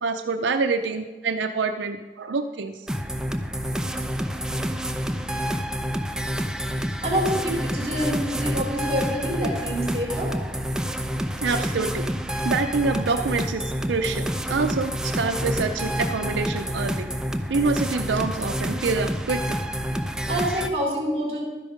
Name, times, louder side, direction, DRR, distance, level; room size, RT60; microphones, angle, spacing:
voice 1, 0.0-2.8 11.4-12.1 12.4-17.1 17.5-19.6, right 4 dB, 90° right, 7 dB, 0.6 m, -26 dB
sound 1, 2.9-20.7, equal, 5° right, 0.6 m, -28 dB
voice 2, 7.0-10.3 20.3-21.4, equal, 35° right, -2 dB, 4.3 m, -26 dB
12.5 x 10.5 x 5.1 m, 1.2 s
head